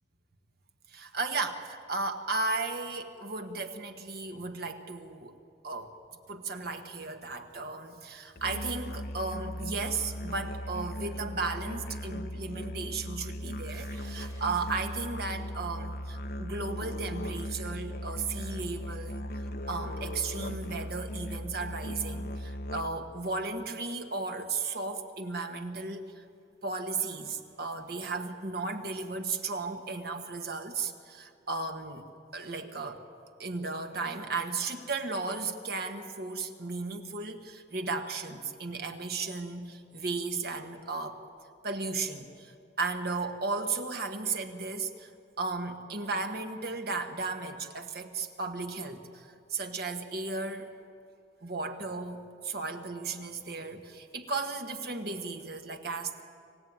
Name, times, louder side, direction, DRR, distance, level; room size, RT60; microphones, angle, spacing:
voice 1, 0.9-5.3 5.6-5.9 6.3-26.2 26.6-32.1 32.3-33.0 33.4-41.2 41.6-45.1 45.4-50.7 51.4-56.2, right 3 dB, 50° right, 5 dB, 1.6 m, -35 dB
Musical instrument, 8.4-23.1, left 1 dB, 50° left, 0.8 m, -38 dB
sound 1, 13.7-14.8 20.0-20.1 22.8-22.9 24.6-24.7 26.1-27.9, right 1 dB, 20° right, 4.1 m, -58 dB
26.5 x 16.0 x 9.5 m, 2.4 s
head